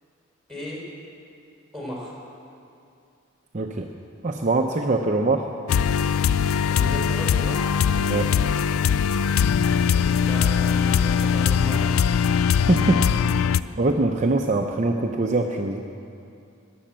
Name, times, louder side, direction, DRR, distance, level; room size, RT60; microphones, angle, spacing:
voice 1, 0.5-0.8 1.7-2.1 6.4-7.7 9.9-12.0, equal, ahead, -4 dB, 4.2 m, -35 dB
voice 2, 3.5-3.9 4.2-5.5 8.1-8.3 12.7-13.5 13.8-15.8, right 2 dB, 35° right, 2 dB, 0.6 m, -23 dB
sound 1, 5.7-13.6, left 7 dB, 75° left, 0.4 m, -21 dB
20.5 x 7.8 x 7.4 m, 2.5 s
head